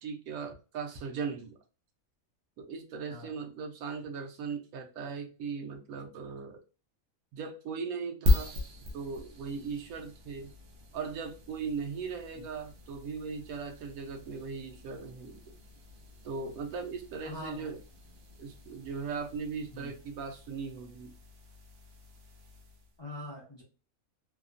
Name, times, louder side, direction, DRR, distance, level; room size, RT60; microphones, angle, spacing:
voice 1, 0.0-1.6 2.6-6.6 7.3-8.5 8.9-10.5 10.9-15.5 16.2-17.8 18.4-21.1, right 5 dB, 85° right, 4 dB, 1.1 m, -38 dB
sound 1, 8.3-23.0, left 2 dB, 60° right, 0.7 m, -37 dB
voice 2, 17.2-17.7 19.7-19.9 23.0-23.6, left 2 dB, 40° left, -4 dB, 0.4 m, -43 dB
2.9 x 2.0 x 2.4 m, 0.35 s
omnidirectional pair, 1.5 m